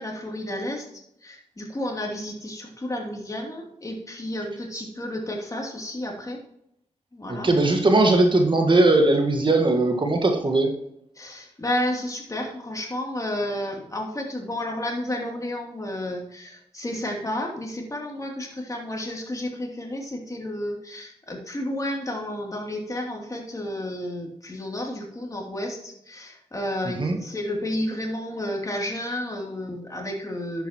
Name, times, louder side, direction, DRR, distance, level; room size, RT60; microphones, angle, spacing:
voice 1, 0.0-6.4 7.1-7.5 11.2-30.7, left 1 dB, 25° left, 1 dB, 2.9 m, -31 dB
voice 2, 7.3-10.7 27.0-27.2, right 2 dB, 40° right, 4 dB, 1.7 m, -19 dB
10.5 x 8.1 x 3.0 m, 0.76 s
cardioid pair, 55°, 13 cm